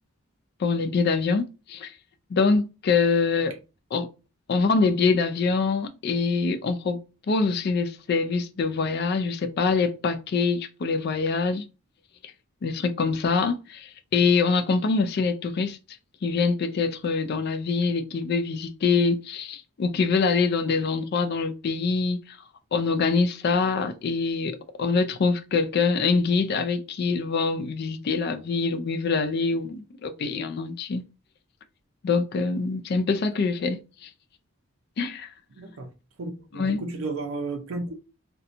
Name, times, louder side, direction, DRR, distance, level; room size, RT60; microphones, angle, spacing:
voice 1, 0.6-1.9 2.3-3.5 3.9-4.1 4.5-7.0 7.3-11.6 12.6-15.8 16.2-22.2 22.7-31.0 32.0-34.1 35.0-35.3 36.5-36.8, left 4 dB, 50° left, 0.3 m, -24 dB
voice 2, 35.5-35.9 36.2-38.0, right 3 dB, 75° right, 0.5 m, -33 dB
2.8 x 2.2 x 2.5 m
head